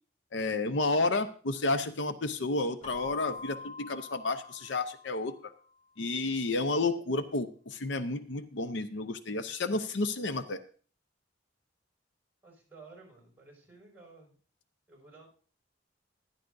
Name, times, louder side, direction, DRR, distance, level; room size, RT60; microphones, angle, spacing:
voice 1, 0.3-5.5 6.0-10.6, left 3 dB, 75° left, 11 dB, 0.7 m, -31 dB
Keyboard (musical), 2.8-5.5, left 3 dB, 35° left, 1.8 m, -45 dB
voice 2, 12.4-14.4 14.9-15.3, right 3 dB, 10° right, -2 dB, 5.6 m, -54 dB
14.0 x 12.0 x 2.6 m, 0.42 s
head